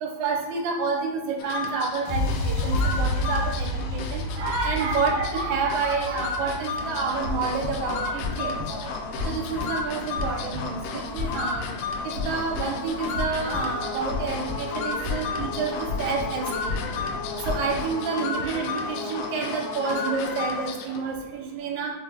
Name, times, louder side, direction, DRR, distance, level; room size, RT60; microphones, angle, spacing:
voice 1, 0.0-8.8 9.3-11.7 12.0-16.8 17.5-21.9, right 5 dB, 80° right, 1 dB, 1.9 m, -29 dB
sound 1, 1.4-21.1, left 4 dB, 90° left, 1.4 m, -33 dB
sound 2, 2.1-10.0, left 1 dB, 75° left, 1.9 m, -30 dB
sound 3, 7.1-17.9, left 3 dB, 40° right, 1.3 m, -35 dB
4.4 x 3.6 x 3.2 m, 1.1 s
omnidirectional pair, 3.4 m